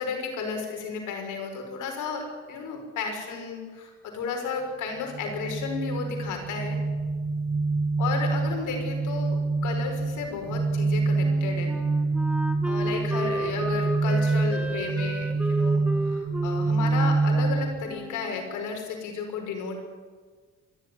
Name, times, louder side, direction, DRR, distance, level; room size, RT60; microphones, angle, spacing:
voice 1, 0.0-6.8 8.0-11.7 12.6-19.8, left 5 dB, 85° left, 3 dB, 5.6 m, -33 dB
sound 1, 5.1-17.9, right 3 dB, 40° right, 4.8 m, -26 dB
Wind instrument woodwind instrument, 11.2-18.7, right 1 dB, 5° right, 1.8 m, -34 dB
27.0 x 12.0 x 9.7 m, 1.5 s
cardioid pair, 90°, 30 cm